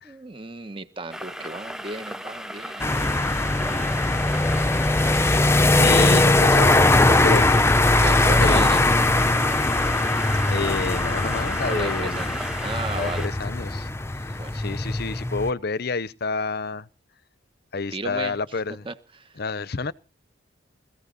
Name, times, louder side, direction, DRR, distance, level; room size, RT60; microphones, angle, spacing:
voice 1, 0.0-3.9 8.0-8.9 11.6-13.3 14.4-14.6 17.9-19.4, right 2 dB, 25° right, 1.4 m, -35 dB
sound 1, 1.1-13.3, equal, 5° right, 1.0 m, -36 dB
sound 2, 2.8-15.5, left 2 dB, 15° left, 0.8 m, -20 dB
voice 2, 5.1-5.4 5.8-7.6 8.4-8.7 10.5-12.3 12.9-13.9 14.2-16.9 17.7-18.8 19.4-19.9, left 4 dB, 55° left, 0.7 m, -29 dB
20.0 x 15.0 x 4.2 m
head